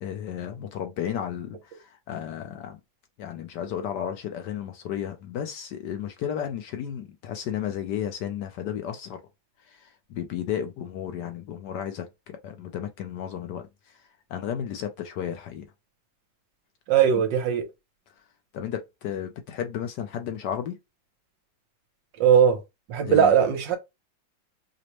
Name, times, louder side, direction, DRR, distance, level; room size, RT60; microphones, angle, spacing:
voice 1, 0.0-2.8 3.2-9.2 9.7-13.7 14.3-15.7 17.1-17.2 18.5-20.8 23.0-23.3, left 9 dB, 70° left, 1.1 m, -33 dB
voice 2, 16.9-17.6 22.2-22.6 22.9-23.8, right 8 dB, 70° right, 1.5 m, -19 dB
5.0 x 2.1 x 2.9 m
omnidirectional pair, 2.1 m